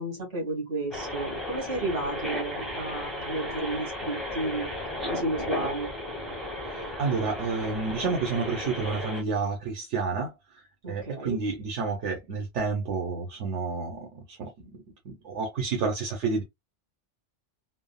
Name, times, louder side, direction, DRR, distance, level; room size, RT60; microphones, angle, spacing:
voice 1, 0.0-4.7 5.1-5.9 10.8-11.4, right 2 dB, 60° right, 1.8 m, -32 dB
sound 1, 0.9-9.2, left 1 dB, ahead, 0.7 m, -34 dB
voice 2, 6.7-10.6 10.9-14.7 15.1-16.4, right 4 dB, 80° right, 1.1 m, -30 dB
3.4 x 2.0 x 2.2 m
omnidirectional pair, 1.2 m